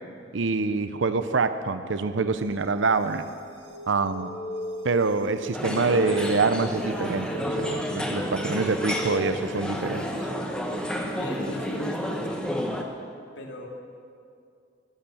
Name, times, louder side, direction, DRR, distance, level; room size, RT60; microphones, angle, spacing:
voice 1, 0.3-3.2 3.9-4.3 4.8-10.1, right 4 dB, 80° right, 11 dB, 0.6 m, -25 dB
sound 1, 2.3-12.3, right 1 dB, 60° right, 1.7 m, -45 dB
sound 2, 4.0-5.2 5.5-6.7 7.0-8.2 8.6-9.7, left 1 dB, 30° left, 0.5 m, -36 dB
sound 3, 5.5-12.8, equal, 5° left, 1.1 m, -31 dB
voice 2, 11.1-12.7 13.4-13.7, left 1 dB, 70° left, 0 dB, 2.4 m, -37 dB
20.0 x 8.9 x 7.0 m, 2.4 s
head